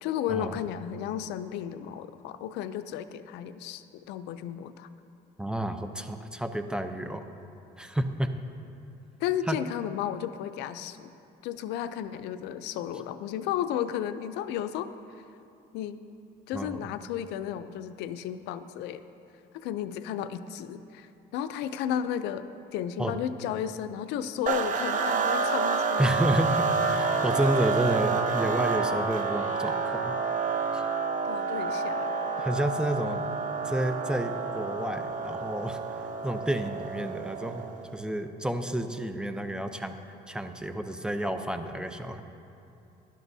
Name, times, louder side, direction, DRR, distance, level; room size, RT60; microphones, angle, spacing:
voice 1, 0.0-4.9 9.2-11.1 11.4-14.9 15.7-16.0 16.5-19.0 19.5-22.4 22.7-26.2 31.2-32.3, left 10 dB, 90° left, 12 dB, 0.5 m, -33 dB
voice 2, 5.4-7.2 7.8-8.3 9.5-9.6 16.5-16.8 23.0-23.2 26.0-30.1 30.7-30.8 32.4-33.3 33.6-35.8 36.2-37.7 37.9-40.0 40.3-42.2, right 1 dB, 5° right, 7 dB, 0.6 m, -30 dB
sound 1, 24.5-37.8, right 5 dB, 50° right, 0.9 m, -29 dB
17.0 x 11.5 x 2.7 m, 2.7 s
cardioid pair, 110°, 17 cm